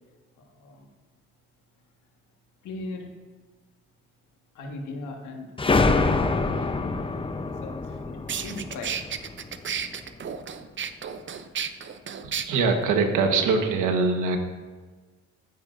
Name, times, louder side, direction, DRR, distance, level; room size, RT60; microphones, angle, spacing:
voice 1, 0.5-0.9 2.6-3.1 4.5-7.0 7.4-9.1, left 2 dB, 85° left, 2 dB, 1.6 m, -39 dB
sound 1, 5.6-10.0, left 3 dB, 15° left, 0.7 m, -26 dB
sound 2, 7.8-7.9 8.3-12.4, right 7 dB, 40° right, 0.6 m, -32 dB
voice 2, 12.0-14.4, right 4 dB, 85° right, 5 dB, 1.3 m, -23 dB
13.0 x 9.6 x 2.6 m, 1.4 s
cardioid pair, 90°, 30 cm